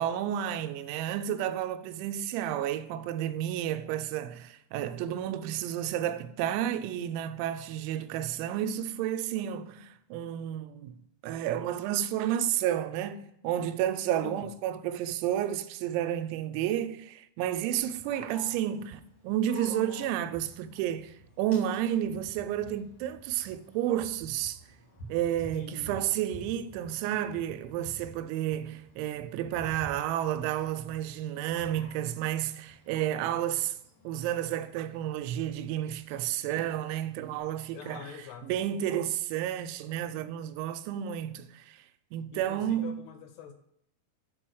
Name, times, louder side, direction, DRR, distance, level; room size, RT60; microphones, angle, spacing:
voice 1, 0.0-11.0 11.2-24.6 25.1-33.8 34.0-38.1 38.4-41.8 42.1-43.0, right 11 dB, 90° right, 2.9 m, -31 dB
voice 2, 14.2-14.5 25.5-26.0 37.7-38.5 42.3-43.5, left 8 dB, 80° left, 2.5 m, -44 dB
Dog, 17.8-37.4, equal, 40° left, 1.7 m, -51 dB
6.0 x 4.8 x 6.2 m
omnidirectional pair, 5.2 m